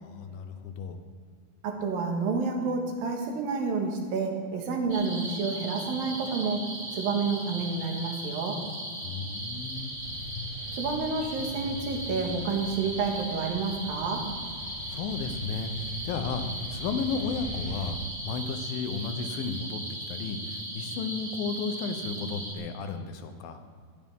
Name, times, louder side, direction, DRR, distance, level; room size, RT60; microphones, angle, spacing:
voice 1, 0.0-1.0 9.0-10.0 14.9-18.0 18.2-19.8 20.1-23.6, left 5 dB, 80° left, 7 dB, 2.7 m, -33 dB
voice 2, 1.6-8.6 10.7-14.2, right 4 dB, 80° right, 1 dB, 3.4 m, -29 dB
sound 1, 4.9-22.5, right 1 dB, 20° right, 1.2 m, -38 dB
sound 2, 9.3-17.9, left 3 dB, 65° left, 2.3 m, -41 dB
18.0 x 11.0 x 3.7 m, 2.1 s
omnidirectional pair, 4.1 m